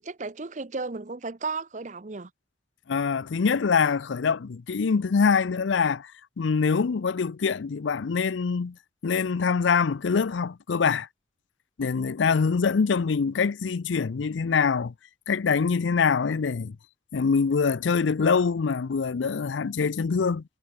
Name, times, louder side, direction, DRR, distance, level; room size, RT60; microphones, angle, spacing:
voice 1, 0.0-2.3, right 4 dB, 40° right, 0.8 m, -34 dB
voice 2, 2.9-6.1 6.4-8.8 9.0-11.1 11.8-14.9 15.3-16.8 17.1-20.4, left 5 dB, 85° left, 0.5 m, -24 dB
head